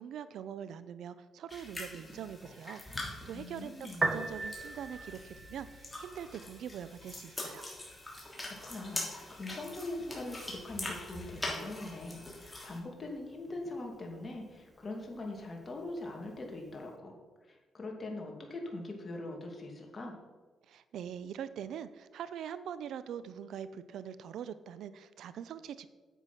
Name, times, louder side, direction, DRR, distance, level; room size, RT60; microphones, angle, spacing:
voice 1, 0.0-5.7 6.0-7.6 20.7-25.9, right 9 dB, 80° right, 14 dB, 0.6 m, -43 dB
sound 1, 1.5-12.8, left 1 dB, 15° left, 3.4 m, -43 dB
voice 2, 3.3-4.1 8.4-17.1 17.5-20.2, left 2 dB, 35° left, 1 dB, 2.4 m, -42 dB
Piano, 3.9-16.9, right 3 dB, 25° right, 1.2 m, -44 dB
9.2 x 8.0 x 5.8 m, 1.4 s
cardioid pair, 85°, 0 cm